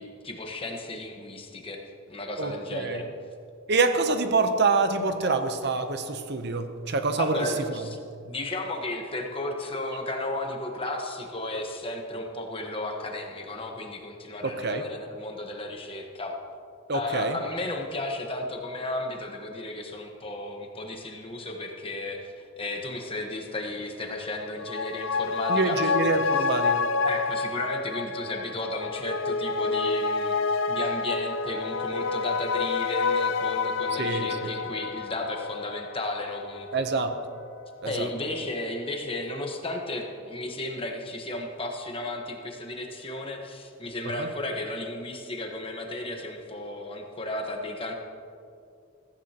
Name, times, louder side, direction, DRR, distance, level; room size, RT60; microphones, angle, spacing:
voice 1, 0.0-1.8 2.1-3.1 7.2-8.0 8.2-16.3 16.9-25.9 26.2-26.5 27.0-36.8 37.8-47.9, left 2 dB, 25° left, 2 dB, 1.3 m, -34 dB
voice 2, 2.4-3.0 3.7-7.4 7.7-7.8 14.4-14.8 16.9-17.4 25.5-26.8 34.0-34.3 36.7-37.1 37.8-38.1 44.2-44.3, right 3 dB, 55° right, 8 dB, 0.8 m, -26 dB
sound 1, 24.4-37.3 37.6-37.7, left 4 dB, 70° left, 0.5 m, -29 dB
15.5 x 14.5 x 2.9 m, 2.4 s
head